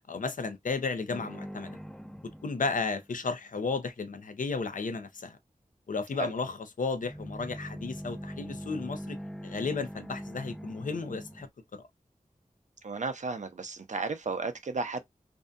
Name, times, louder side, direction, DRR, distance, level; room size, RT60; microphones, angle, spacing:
voice 1, 0.1-1.8 2.4-5.4 5.9-9.2 9.4-11.8, left 4 dB, 70° left, 0.5 m, -33 dB
sound 1, 1.1-3.3 6.9-11.5, equal, 5° left, 0.4 m, -42 dB
voice 2, 12.8-15.0, right 4 dB, 60° right, 0.5 m, -34 dB
2.6 x 2.2 x 2.5 m
wide cardioid pair, 85°, 14 cm